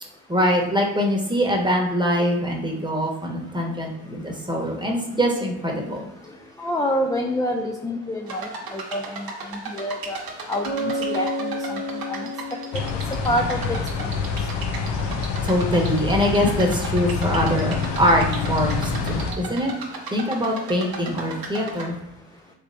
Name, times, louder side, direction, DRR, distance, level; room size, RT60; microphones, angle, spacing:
voice 1, 0.3-6.1 15.0-15.1 15.4-19.7 20.1-22.0, equal, 10° right, 0 dB, 1.0 m, -23 dB
voice 2, 6.6-10.2 10.5-11.8 12.1-12.3 12.7-12.8 13.3-13.6 14.0-14.1, left 1 dB, 10° left, 2 dB, 0.3 m, -27 dB
sound 1, 8.3-21.9, right 4 dB, 55° right, 0.9 m, -36 dB
Bass guitar, 10.6-14.3, equal, 60° left, 1.1 m, -31 dB
sound 2, 12.7-19.3, left 5 dB, 90° left, 0.5 m, -26 dB
3.3 x 3.2 x 2.6 m, 0.90 s
hypercardioid pair, 40°, 42 cm